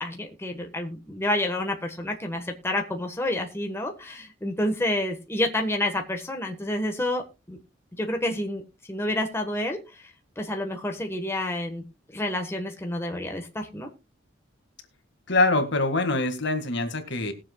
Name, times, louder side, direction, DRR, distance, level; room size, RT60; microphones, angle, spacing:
voice 1, 0.0-7.6 8.0-8.6 8.9-9.8 10.4-11.8 12.1-13.9, left 1 dB, 15° left, 3 dB, 1.3 m, -29 dB
voice 2, 15.3-17.3, left 2 dB, 60° left, 7 dB, 1.9 m, -24 dB
20.5 x 7.4 x 2.3 m, 0.27 s
head